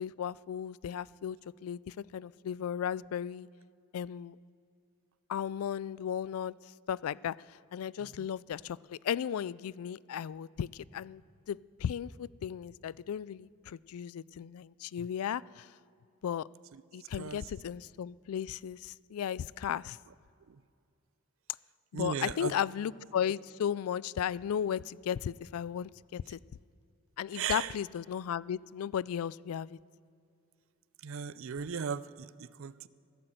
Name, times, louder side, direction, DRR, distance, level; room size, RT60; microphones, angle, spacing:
voice 1, 0.0-1.4 1.6-3.5 3.9-4.4 5.3-6.5 6.9-7.4 7.7-11.2 11.5-15.7 16.2-16.5 16.9-20.0 21.9-26.4 27.2-29.8, left 9 dB, 80° left, 22 dB, 0.3 m, -35 dB
voice 2, 21.9-22.5 27.3-27.7 31.0-32.9, right 7 dB, 60° right, 17 dB, 0.4 m, -37 dB
15.0 x 12.0 x 7.7 m, 2.5 s
head